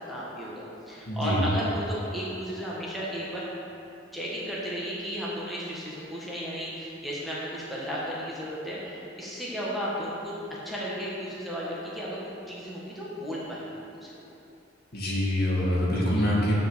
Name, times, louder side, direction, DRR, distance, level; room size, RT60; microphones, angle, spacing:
voice 1, 0.1-3.4 4.1-10.3 10.6-12.2 12.5-14.1 15.1-15.2, equal, ahead, -7 dB, 1.5 m, -34 dB
voice 2, 1.1-1.4 14.9-16.5, equal, 55° left, -6 dB, 2.4 m, -25 dB
9.7 x 5.3 x 6.7 m, 2.7 s
head